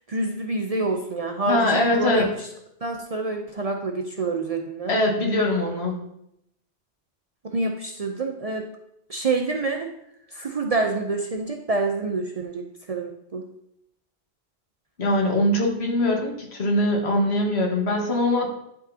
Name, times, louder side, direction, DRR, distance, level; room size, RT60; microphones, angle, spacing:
voice 1, 0.1-2.5 2.8-5.0 7.5-8.7 9.1-9.9 10.3-13.4, right 3 dB, 45° right, 3 dB, 0.5 m, -27 dB
voice 2, 1.5-2.3 4.9-6.0 15.0-18.5, left 1 dB, 70° left, 0 dB, 1.7 m, -22 dB
11.0 x 5.0 x 2.7 m, 0.78 s
omnidirectional pair, 1.1 m